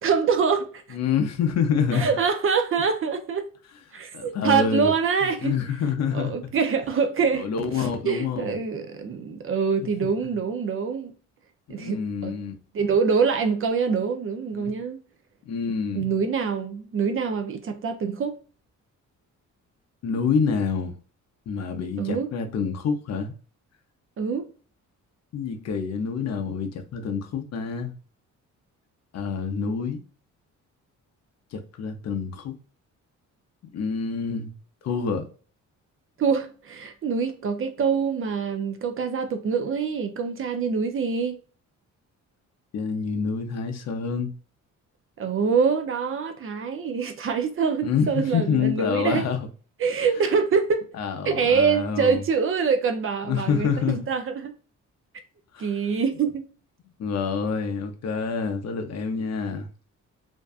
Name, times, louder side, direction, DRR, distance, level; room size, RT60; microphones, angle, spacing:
voice 1, 0.0-0.8 1.9-3.5 3.9-5.5 6.1-7.5 7.7-11.1 11.7-12.3 12.7-15.0 15.9-18.3 22.0-22.3 24.2-24.5 36.2-41.4 45.2-49.3 49.8-50.8 51.3-54.5 55.6-56.5, right 5 dB, 45° right, 0.4 m, -25 dB
voice 2, 0.9-2.1 3.9-4.9 5.4-6.3 7.3-8.6 10.2-10.3 11.7-12.5 14.5-14.7 15.4-16.2 20.0-20.9 21.5-23.3 25.3-27.9 29.1-30.0 31.5-32.5 33.7-34.5 34.8-35.3 42.7-44.4 47.8-49.5 50.9-52.2 53.3-54.0 55.5-55.7 57.0-59.7, left 6 dB, 55° left, 0.6 m, -27 dB
2.6 x 2.2 x 2.3 m
cardioid pair, 125°, 31 cm